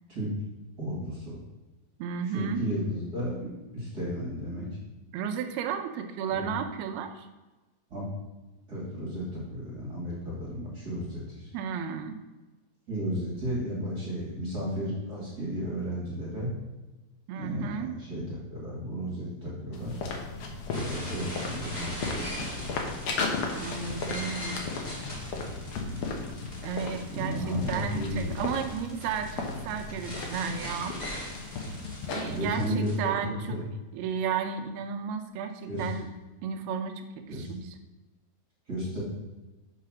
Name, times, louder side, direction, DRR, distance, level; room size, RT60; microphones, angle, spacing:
voice 1, 0.8-1.4 2.3-4.7 6.3-6.5 7.9-8.1 8.7-11.5 12.9-16.5 17.4-20.0 20.7-22.7 27.1-28.4 32.2-33.6 35.7-35.9 37.3-37.5 38.7-39.0, equal, 30° right, -6 dB, 2.0 m, -33 dB
voice 2, 2.0-2.6 5.1-7.3 11.5-12.2 17.3-18.0 23.5-24.7 26.6-31.0 32.1-33.6 33.9-36.1 36.4-37.8, right 7 dB, 80° right, 6 dB, 2.5 m, -33 dB
sound 1, 19.7-32.5, left 4 dB, 80° left, 1.4 m, -36 dB
sound 2, 20.7-32.9, left 1 dB, 15° left, 1.3 m, -41 dB
6.6 x 5.7 x 6.1 m, 1.1 s
omnidirectional pair, 4.6 m